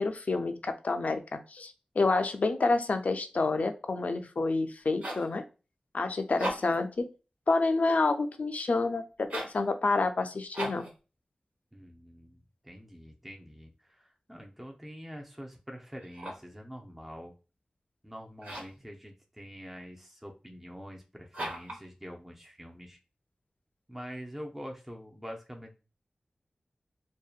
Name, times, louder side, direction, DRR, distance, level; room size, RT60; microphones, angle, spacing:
voice 1, 0.0-5.4 5.9-7.1 7.5-10.9, left 3 dB, 65° left, 7 dB, 0.3 m, -28 dB
sound 1, 4.7-5.3 6.3-6.9 9.2-9.6 10.5-11.0 16.0-16.6 18.4-18.8 21.3-21.8, right 1 dB, 65° right, 1.1 m, -37 dB
voice 2, 11.7-17.3 18.0-23.0 23.9-25.7, equal, 5° right, 1 dB, 0.5 m, -45 dB
2.6 x 2.2 x 2.3 m, 0.32 s
cardioid pair, 50°, 3 cm